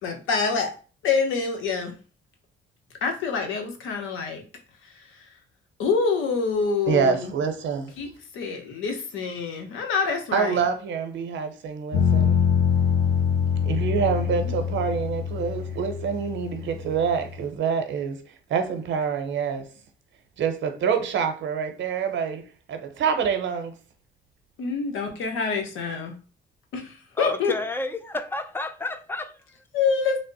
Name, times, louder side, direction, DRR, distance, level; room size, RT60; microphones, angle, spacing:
voice 1, 0.0-0.7 1.0-1.9 3.0-4.4 4.9-5.0 5.8-7.3 8.0-8.1 8.3-10.6 14.3-14.6 14.9-15.0 24.6-26.1 26.7-27.5 29.7-30.2, left 5 dB, 85° left, 0.8 m, -26 dB
voice 2, 6.9-7.9 10.3-12.4 13.6-18.2 18.5-19.7 20.4-23.7, right 6 dB, 70° right, 0.7 m, -26 dB
sound 1, 11.9-17.5, left 7 dB, 50° left, 1.0 m, -24 dB
voice 3, 27.2-29.3, left 2 dB, 10° left, 0.4 m, -31 dB
3.2 x 2.0 x 3.8 m
cardioid pair, 90°, 20 cm